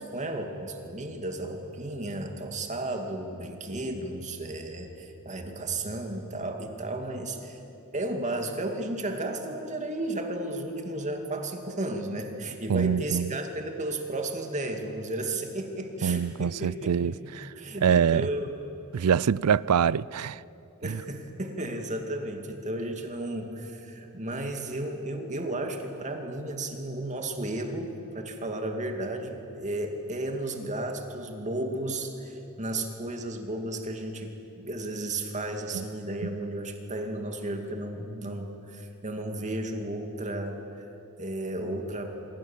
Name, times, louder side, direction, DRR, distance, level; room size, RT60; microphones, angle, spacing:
voice 1, 0.0-7.6 7.9-17.2 17.6-18.5 20.8-40.9 41.2-42.2, right 1 dB, 35° right, 2.4 m, -33 dB
voice 2, 12.7-13.3 16.0-17.5 17.8-18.3 18.9-20.4 20.8-21.0 35.7-35.9, right 7 dB, 85° right, 0.4 m, -25 dB
26.5 x 22.0 x 7.4 m
head